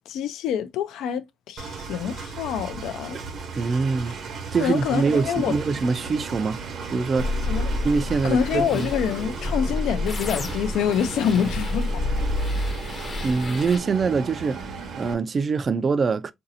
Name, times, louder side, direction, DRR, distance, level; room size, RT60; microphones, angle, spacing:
voice 1, 0.1-3.2 4.6-5.5 7.5-7.8 8.2-12.1, left 8 dB, 85° left, 0.4 m, -26 dB
Engine, 1.6-15.1, right 5 dB, 70° right, 0.9 m, -35 dB
voice 2, 3.5-4.2 4.5-6.6 6.9-7.4 7.8-8.9 13.2-14.7 14.9-16.3, right 4 dB, 40° right, 0.3 m, -24 dB
sound 1, 7.2-13.8, left 2 dB, 40° left, 0.7 m, -29 dB
4.0 x 2.6 x 2.6 m
cardioid pair, 90°, 0 cm